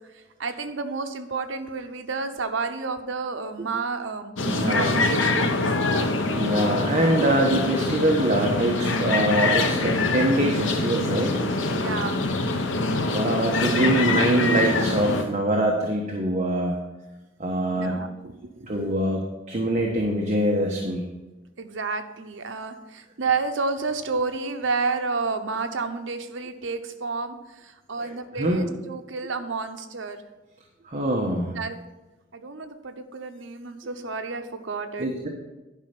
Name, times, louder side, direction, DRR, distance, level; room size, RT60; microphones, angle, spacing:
voice 1, 0.4-5.7 11.7-12.2 17.8-18.7 21.6-30.2 31.5-31.8 32.3-35.1, right 4 dB, 80° right, 7 dB, 0.9 m, -30 dB
sound 1, 4.4-15.2, left 2 dB, 80° left, 1.0 m, -24 dB
voice 2, 4.4-5.3 6.4-11.4 13.1-16.8 17.4-18.0 18.7-21.1 28.0-28.1 28.4-28.7 30.9-31.5 35.0-35.3, right 1 dB, 40° right, 0 dB, 1.2 m, -24 dB
11.0 x 5.4 x 5.9 m, 1.1 s
head